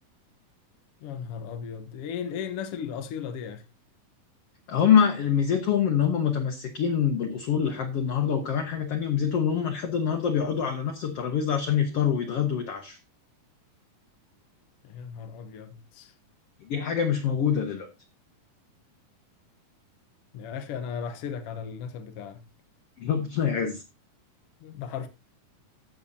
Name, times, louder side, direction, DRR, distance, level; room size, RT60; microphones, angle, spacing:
voice 1, 1.0-3.7 14.8-16.1 20.3-22.5 24.6-25.1, left 7 dB, 80° left, 1.3 m, -36 dB
voice 2, 4.7-13.0 16.6-17.9 23.0-23.8, left 8 dB, 65° left, 1.5 m, -25 dB
14.0 x 6.9 x 2.7 m
omnidirectional pair, 4.0 m